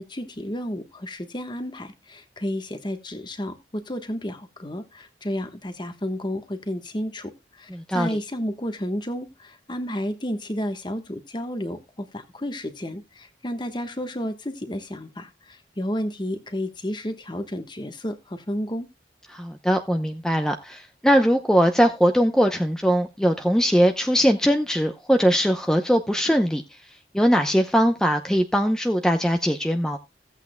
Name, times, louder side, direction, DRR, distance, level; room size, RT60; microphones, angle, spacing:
voice 1, 0.0-18.9, equal, 25° left, 1.3 m, -31 dB
voice 2, 19.3-26.6 27.1-30.0, equal, 5° left, 0.7 m, -21 dB
16.5 x 8.3 x 2.3 m
head